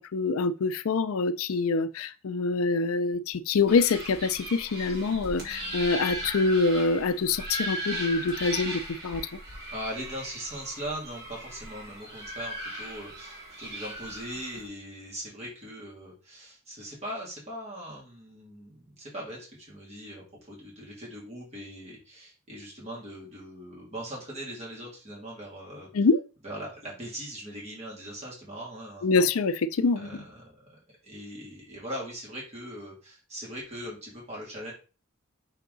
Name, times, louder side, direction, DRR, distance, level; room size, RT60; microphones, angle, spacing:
voice 1, 0.0-9.2 25.9-26.2 29.0-30.2, left 4 dB, 80° left, 0.5 m, -25 dB
sound 1, 3.7-14.7, right 1 dB, 50° right, 2.4 m, -38 dB
voice 2, 9.7-25.9 26.4-29.2 30.0-30.7 31.0-34.7, equal, 30° right, 2.7 m, -40 dB
5.8 x 4.6 x 3.9 m
head